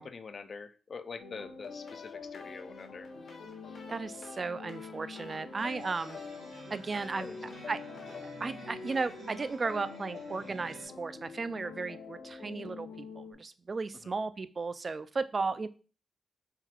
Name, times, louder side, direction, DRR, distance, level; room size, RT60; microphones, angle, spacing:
voice 1, 0.0-3.1 3.6-3.8 7.2-7.4 14.0-14.1, left 5 dB, 55° left, 10 dB, 0.4 m, -45 dB
sound 1, 1.2-13.3, left 5 dB, 85° left, 0.8 m, -46 dB
sound 2, 1.6-10.7, left 3 dB, 70° left, 1.1 m, -54 dB
voice 2, 3.9-6.2 6.7-7.3 7.7-7.8 8.4-15.7, right 4 dB, 45° right, 13 dB, 0.3 m, -35 dB
sound 3, 5.6-10.8, right 3 dB, 70° right, 1.4 m, -51 dB
3.7 x 2.3 x 4.4 m, 0.38 s
cardioid pair, 70°, 0 cm